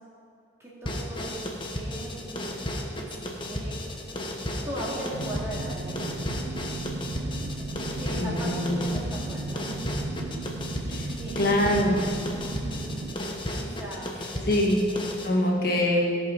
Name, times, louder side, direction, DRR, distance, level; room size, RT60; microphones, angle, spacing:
voice 1, 0.6-2.4 3.0-6.0 7.0-7.3 8.0-9.7 10.9-11.6 12.4-14.5, right 1 dB, 15° right, -7 dB, 2.5 m, -39 dB
sound 1, 0.8-15.3, left 1 dB, 25° left, 1.1 m, -34 dB
sound 2, 5.1-13.1, right 2 dB, 75° right, 0.5 m, -35 dB
voice 2, 8.2-8.8 11.4-12.0 14.5-14.9 15.2-16.0, left 1 dB, 55° left, -2 dB, 1.7 m, -23 dB
17.0 x 5.7 x 5.4 m, 2.4 s
head